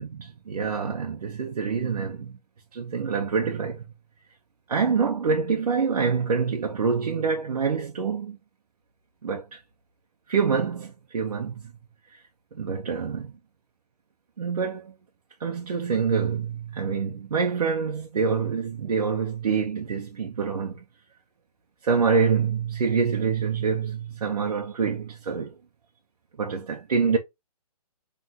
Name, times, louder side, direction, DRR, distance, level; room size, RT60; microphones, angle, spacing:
voice 1, 0.0-2.4 2.7-3.8 4.7-8.4 9.2-9.6 10.3-11.7 12.1-12.2 12.5-13.3 14.4-14.9 15.4-20.8 21.8-25.5 26.4-27.2, right 5 dB, 70° right, 1.0 m, -26 dB
3.8 x 3.5 x 2.9 m
hypercardioid pair, 165°, 20 cm